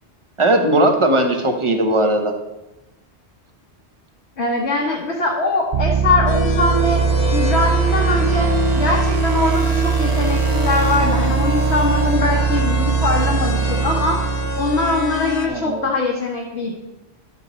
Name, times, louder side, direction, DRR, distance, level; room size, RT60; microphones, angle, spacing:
voice 1, 0.4-2.3 15.5-15.8, right 1 dB, 30° right, 4 dB, 1.0 m, -18 dB
voice 2, 4.4-7.0 7.3-16.7, left 2 dB, 75° left, -2 dB, 1.4 m, -22 dB
sound 1, 5.7-15.5, right 5 dB, 55° right, 0.4 m, -20 dB
sound 2, 6.3-15.5, left 4 dB, 60° left, 1.1 m, -27 dB
12.0 x 8.1 x 3.1 m, 1.0 s
omnidirectional pair, 1.1 m